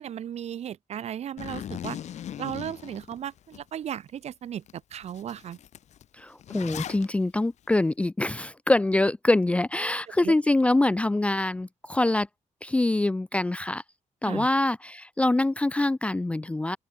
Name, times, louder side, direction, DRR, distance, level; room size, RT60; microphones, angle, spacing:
voice 1, 0.0-2.0 2.4-5.6 10.2-10.3 14.2-14.5, right 10 dB, 60° right, 2.3 m, -36 dB
Zipper (clothing), 1.4-3.6 4.1-4.2 4.7-4.8 5.0-7.1, left 10 dB, 65° left, 4.2 m, -39 dB
voice 2, 6.2-12.3 12.6-13.8 14.2-16.8, left 2 dB, 10° left, 0.5 m, -24 dB
open air
wide cardioid pair, 180°, 13 cm